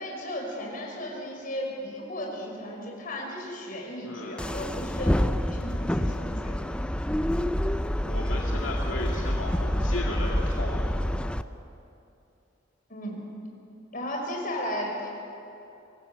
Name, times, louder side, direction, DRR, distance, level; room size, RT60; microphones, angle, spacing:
voice 1, 0.0-5.2 5.5-6.6 12.9-13.2 13.9-15.1, equal, 45° left, -1 dB, 5.4 m, -35 dB
voice 2, 4.0-4.4 8.1-11.0, left 2 dB, 80° left, -2 dB, 2.3 m, -35 dB
sound 1, 4.4-11.4, equal, 5° left, 0.5 m, -27 dB
24.5 x 19.5 x 6.9 m, 2.7 s
head